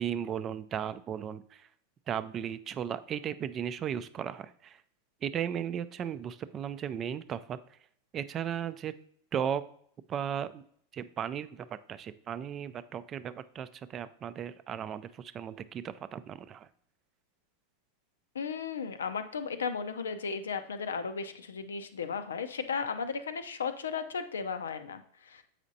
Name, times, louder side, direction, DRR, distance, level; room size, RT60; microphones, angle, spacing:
voice 1, 0.0-1.7 2.1-4.8 5.2-7.6 8.1-8.9 9.3-9.6 10.1-10.6 10.9-16.7, right 9 dB, 35° right, 14 dB, 0.4 m, -36 dB
voice 2, 18.3-25.4, left 5 dB, 90° left, 10 dB, 0.5 m, -35 dB
7.3 x 5.0 x 2.7 m, 0.64 s
hypercardioid pair, 105°, 0 cm